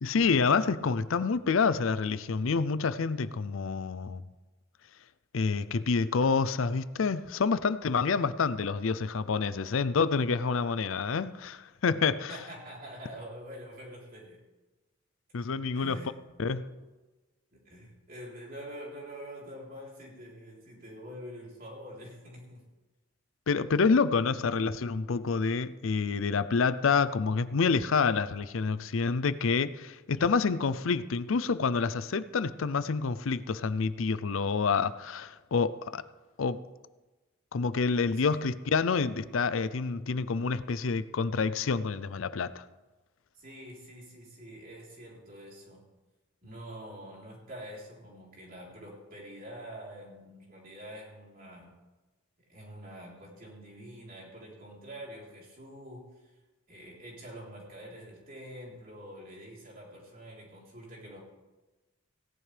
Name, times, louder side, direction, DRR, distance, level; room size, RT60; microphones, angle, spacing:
voice 1, 0.0-4.2 5.3-12.4 15.3-16.0 16.4-16.6 23.5-36.0 36.4-36.6 37.5-42.6, left 5 dB, 75° left, 0.5 m, -28 dB
voice 2, 12.3-14.4 15.7-16.7 17.5-22.6 38.3-38.5 43.3-45.9 46.4-51.8 52.5-56.3 56.7-61.2, equal, 45° right, 3.8 m, -46 dB
17.5 x 10.5 x 3.4 m
head